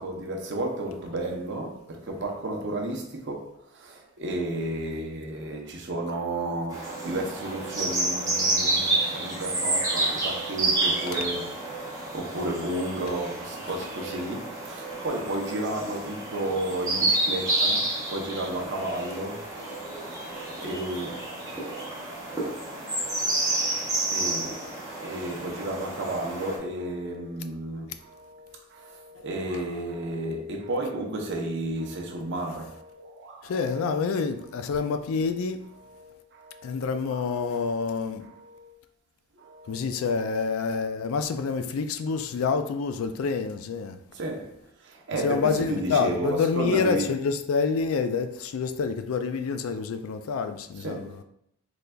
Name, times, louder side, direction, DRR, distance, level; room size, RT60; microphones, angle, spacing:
voice 1, 0.0-11.5 12.1-19.5 20.4-23.5 24.1-34.0 35.8-38.8 39.4-40.3 44.1-47.1 50.8-51.2, right 1 dB, 55° right, 0.7 m, -33 dB
sound 1, 6.7-26.6, right 2 dB, 15° right, 0.9 m, -29 dB
voice 2, 33.4-35.7 36.6-38.3 39.7-44.0 45.2-51.2, left 5 dB, 70° left, 0.3 m, -27 dB
3.9 x 3.3 x 2.3 m
head